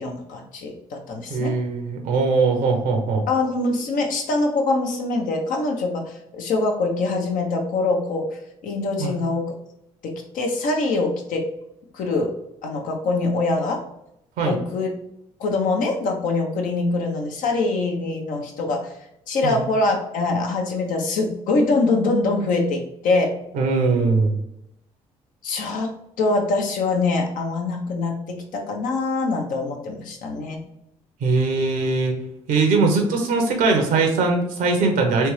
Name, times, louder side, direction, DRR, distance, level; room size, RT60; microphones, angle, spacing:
voice 1, 0.0-1.5 3.3-8.3 8.6-9.5 10.0-11.4 11.9-12.3 12.6-13.8 14.5-14.9 15.4-18.9 19.3-23.3 25.4-25.9 26.2-30.6 32.9-33.0, left 3 dB, 70° left, 2 dB, 0.8 m, -24 dB
voice 2, 1.3-3.3 9.0-9.2 14.4-14.6 19.4-19.6 23.5-24.3 31.2-32.1 32.5-35.3, right 4 dB, 75° right, 3 dB, 0.9 m, -21 dB
3.4 x 3.0 x 3.2 m, 0.81 s
hypercardioid pair, 55°, 14 cm